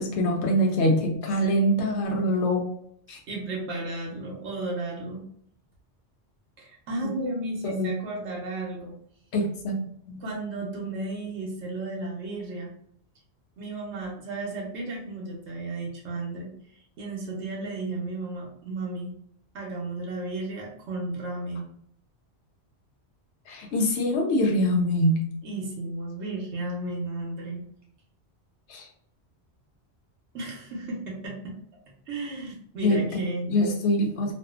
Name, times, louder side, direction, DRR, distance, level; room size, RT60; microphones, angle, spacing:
voice 1, 0.0-2.6 3.1-3.2 7.6-7.9 9.3-9.7 10.1-10.2 23.5-25.3 28.7-28.9 32.8-33.2 33.5-34.3, equal, 80° left, 1 dB, 0.9 m, -24 dB
voice 2, 1.4-1.9 3.3-5.2 6.6-8.9 10.2-12.7 13.6-16.5 17.0-19.1 19.5-21.7 25.4-27.6 30.3-31.6 32.1-33.5, right 2 dB, 85° right, -2 dB, 1.0 m, -34 dB
2.6 x 2.3 x 2.3 m, 0.67 s
omnidirectional pair, 1.1 m